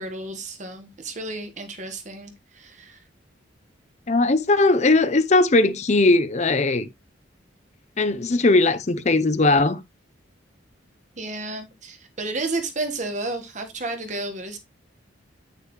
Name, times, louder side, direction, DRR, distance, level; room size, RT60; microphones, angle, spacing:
voice 1, 0.0-3.0 11.2-14.6, right 2 dB, 40° right, 1.3 m, -32 dB
voice 2, 4.1-6.9 8.0-9.8, left 2 dB, 35° left, 0.6 m, -19 dB
9.4 x 6.7 x 3.0 m
head